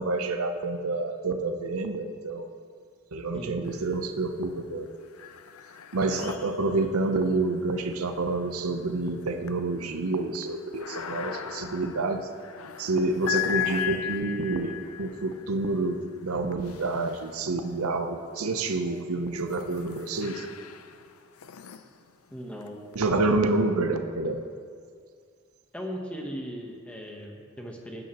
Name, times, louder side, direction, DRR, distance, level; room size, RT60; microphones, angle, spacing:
voice 1, 0.0-2.5 3.1-4.9 5.9-12.3 12.8-20.5 22.9-24.4, right 2 dB, 90° right, 6 dB, 0.7 m, -28 dB
sound 1, 3.6-4.3 4.7-17.8 18.5-23.0, left 10 dB, 85° left, 0.5 m, -38 dB
voice 2, 22.3-22.8 25.7-28.0, equal, 5° left, 0 dB, 1.0 m, -38 dB
15.5 x 8.9 x 3.0 m, 2.1 s
head